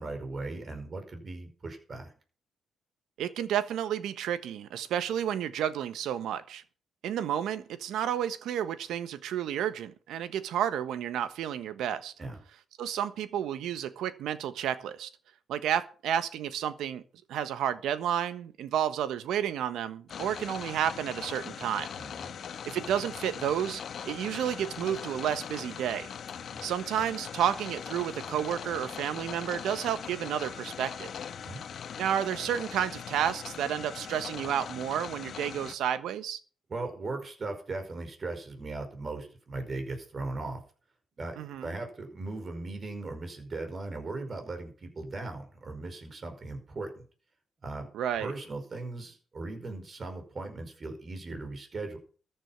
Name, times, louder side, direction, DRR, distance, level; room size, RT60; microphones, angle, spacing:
voice 1, 0.0-2.1 12.2-12.4 22.0-22.3 31.4-31.6 36.7-40.6 41.2-47.0 47.6-47.9 48.2-52.0, right 3 dB, 40° right, 5.1 m, -38 dB
voice 2, 3.2-6.6 7.0-12.1 12.8-15.1 15.5-17.0 17.3-21.9 22.6-26.1 26.6-31.1 32.0-36.4 41.4-41.8 47.9-48.3, right 10 dB, 80° right, 1.3 m, -31 dB
sound 1, 20.1-35.7, left 7 dB, 55° left, 1.5 m, -41 dB
14.0 x 10.0 x 5.9 m
cardioid pair, 90°, 0 cm